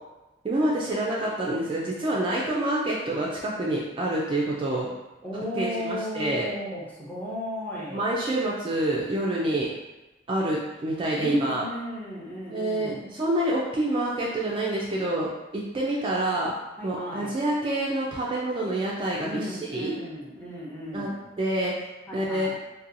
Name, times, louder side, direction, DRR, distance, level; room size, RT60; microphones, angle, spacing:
voice 1, 0.4-4.9 5.6-6.5 7.9-9.7 10.3-11.6 12.5-16.5 16.8-19.9 20.9-21.1 21.4-21.7 22.1-22.5, right 1 dB, 30° right, -4 dB, 0.3 m, -27 dB
voice 2, 5.2-8.1 11.1-13.0 16.8-17.4 19.2-21.3 22.1-22.6, equal, 10° left, -6 dB, 0.6 m, -35 dB
2.7 x 2.2 x 2.5 m, 1.0 s
head